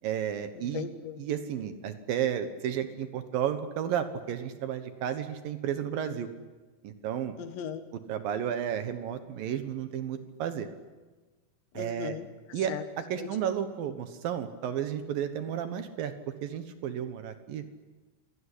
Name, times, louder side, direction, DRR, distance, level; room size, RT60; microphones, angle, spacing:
voice 1, 0.0-0.9 1.2-6.3 6.8-7.3 8.1-10.7 11.7-12.1 12.5-12.7 13.1-16.1 16.4-17.6, right 9 dB, 70° right, 9 dB, 2.3 m, -32 dB
voice 2, 0.6-1.2 7.4-7.8 11.7-12.8 13.2-13.4, left 8 dB, 70° left, 8 dB, 3.8 m, -38 dB
27.5 x 18.5 x 10.0 m, 1.3 s
omnidirectional pair, 5.5 m